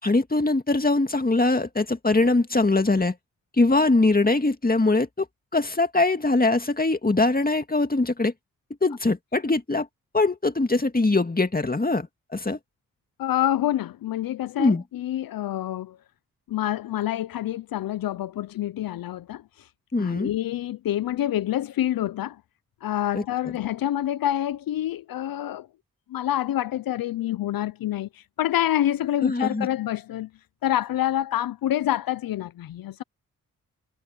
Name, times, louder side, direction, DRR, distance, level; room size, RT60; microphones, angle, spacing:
voice 1, 0.0-3.1 3.6-5.3 5.5-8.3 8.8-9.9 10.1-12.1 12.3-12.6 14.6-14.8 19.9-20.3 23.1-23.2 29.2-29.7, left 2 dB, 25° left, 2.2 m, -22 dB
voice 2, 13.2-16.0 16.5-19.7 20.0-22.4 22.8-25.7 26.1-30.3 30.6-33.0, left 12 dB, 80° left, 0.6 m, -27 dB
supercardioid pair, 40°, 35 cm